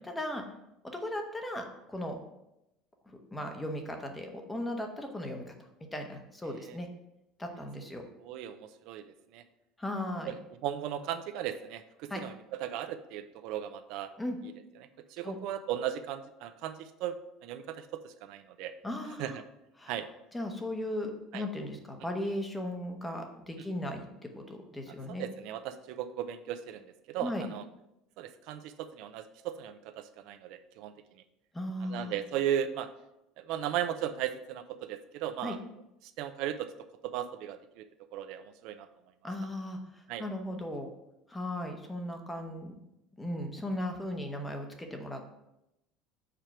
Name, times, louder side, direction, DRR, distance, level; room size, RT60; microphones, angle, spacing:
voice 1, 0.1-0.4 0.8-2.2 3.1-5.5 5.9-6.9 7.4-8.0 9.8-10.3 12.1-12.2 14.2-14.4 15.2-15.4 18.8-19.4 19.8-19.9 20.3-25.3 27.2-27.4 31.5-32.1 35.4-35.6 39.2-40.9 41.3-42.8 43.2-45.2, left 1 dB, 10° left, 4 dB, 0.8 m, -37 dB
voice 2, 8.2-9.0 9.3-9.4 10.2-10.3 10.6-12.3 12.6-14.1 15.1-17.1 17.4-18.7 19.2-19.4 19.9-20.1 21.3-21.4 25.2-27.6 28.2-30.9 31.8-32.9 33.4-35.6 36.2-36.7 37.0-37.8 38.1-38.9 40.1-40.2, right 10 dB, 60° right, 9 dB, 0.4 m, -36 dB
5.0 x 4.4 x 5.8 m, 0.87 s
cardioid pair, 160°, 0 cm